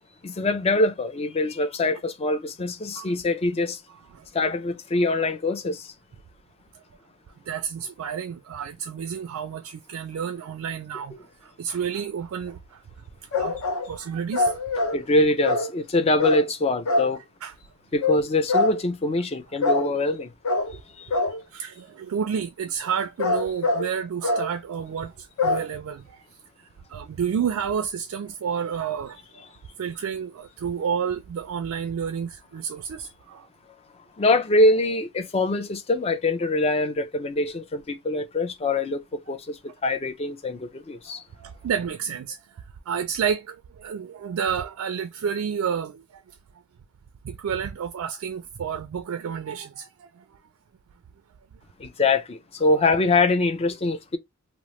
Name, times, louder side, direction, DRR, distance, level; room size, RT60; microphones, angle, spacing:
voice 1, 0.2-3.8 4.3-5.9 14.9-17.2 17.9-20.3 20.7-21.2 34.2-39.0 39.3-41.2 51.8-54.2, left 2 dB, 25° left, 0.4 m, -24 dB
voice 2, 7.5-12.8 13.3-14.6 17.4-17.5 21.5-26.2 26.6-29.4 29.8-33.5 41.1-46.4 47.2-50.2, right 7 dB, 70° right, 0.3 m, -30 dB
sound 1, 13.3-13.9 14.3-15.0 15.4-15.7 16.2-16.5 16.9-17.1 18.0-18.2 18.5-18.8 19.6-19.9 20.4-20.7 21.1-21.4 23.0-23.9 24.2-24.5 25.4-25.7, left 2 dB, 65° left, 0.7 m, -24 dB
2.9 x 2.0 x 3.0 m
head